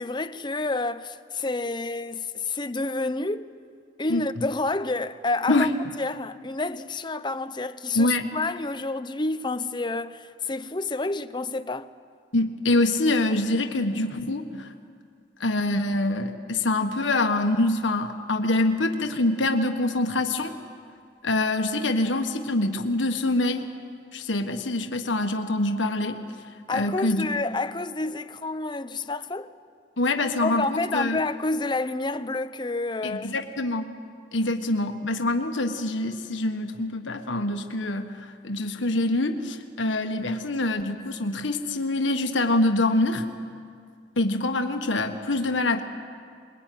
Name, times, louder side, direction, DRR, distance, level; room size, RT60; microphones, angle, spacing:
voice 1, 0.0-3.5 4.0-5.7 6.0-11.9 26.7-29.5 30.4-33.3, left 2 dB, 25° left, 0.7 m, -29 dB
voice 2, 7.9-8.2 12.3-14.7 15.4-20.5 21.2-23.7 24.1-26.2 26.7-27.3 30.0-31.2 33.0-33.9 34.3-43.3 44.2-45.8, left 2 dB, 90° left, 1.5 m, -25 dB
25.0 x 21.5 x 9.4 m
head